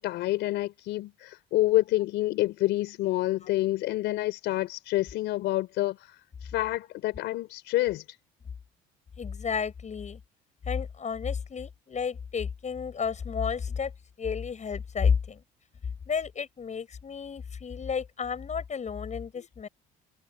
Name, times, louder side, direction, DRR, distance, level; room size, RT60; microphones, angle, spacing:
voice 1, 0.0-6.1 6.4-8.0, left 16 dB, 75° left, 4.1 m, -28 dB
voice 2, 9.2-10.2 10.7-13.9 14.2-15.4 16.1-19.7, left 6 dB, 40° left, 7.9 m, -31 dB
supercardioid pair, 75°, 19 cm